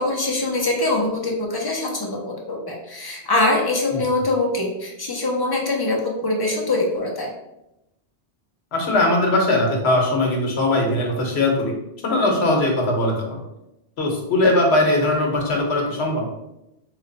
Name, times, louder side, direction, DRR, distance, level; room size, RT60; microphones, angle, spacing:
voice 1, 0.0-7.3, left 2 dB, 30° left, 0 dB, 0.4 m, -23 dB
voice 2, 8.7-11.7 12.0-13.4 14.0-16.3, left 2 dB, 75° left, 1 dB, 1.0 m, -20 dB
3.2 x 2.2 x 3.8 m, 0.90 s
omnidirectional pair, 1.1 m